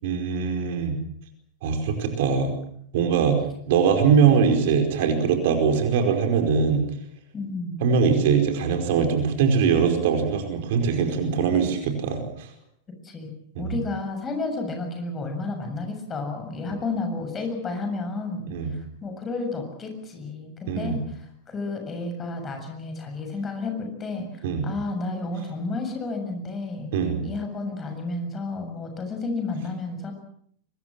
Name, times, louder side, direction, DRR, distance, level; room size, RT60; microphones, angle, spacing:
voice 1, 0.0-1.0 1.6-2.5 2.9-6.8 7.8-12.5 13.5-13.8 18.5-18.7 20.7-21.0 24.4-24.6 26.9-27.2, right 6 dB, 50° right, 6 dB, 4.9 m, -22 dB
voice 2, 7.3-7.8 13.0-18.5 19.0-26.9 27.2-30.1, left 3 dB, 20° left, 5 dB, 7.1 m, -31 dB
24.0 x 22.5 x 7.7 m, 0.66 s
figure-of-eight pair, 90°, 0 cm